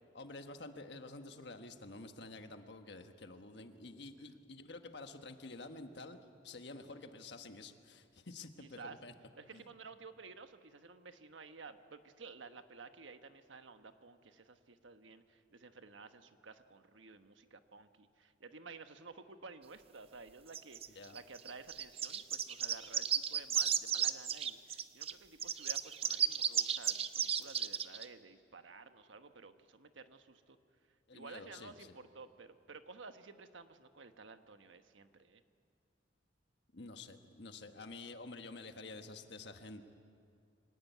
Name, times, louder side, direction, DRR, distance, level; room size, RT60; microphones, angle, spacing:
voice 1, 0.1-6.2 6.4-9.1 9.5-9.7 20.9-21.2 31.1-31.9 36.7-39.8, left 3 dB, 65° left, 7 dB, 1.4 m, -49 dB
voice 2, 8.6-9.0 9.4-30.6 31.1-35.4, right 4 dB, 90° right, 8 dB, 1.2 m, -53 dB
sound 1, 20.5-25.1 25.4-28.1, right 8 dB, 30° right, 0.6 m, -34 dB
24.5 x 18.0 x 9.3 m, 2.4 s
head